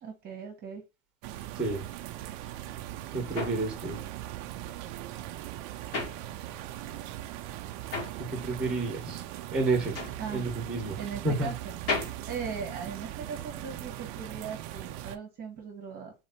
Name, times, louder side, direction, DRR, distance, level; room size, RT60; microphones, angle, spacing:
voice 1, 0.0-0.8 10.2-10.5 11.0-11.7 12.3-16.1, right 6 dB, 25° right, 1.3 m, -39 dB
sound 1, 1.2-15.2, right 14 dB, 40° right, 0.5 m, -40 dB
voice 2, 1.5-1.9 3.1-4.0 8.2-9.2 9.5-10.0 10.3-11.5, right 3 dB, ahead, 1.4 m, -30 dB
sound 2, 2.6-6.9 7.2-13.4, left 3 dB, 35° left, 1.6 m, -38 dB
3.8 x 3.2 x 4.1 m
supercardioid pair, 150°, 40 cm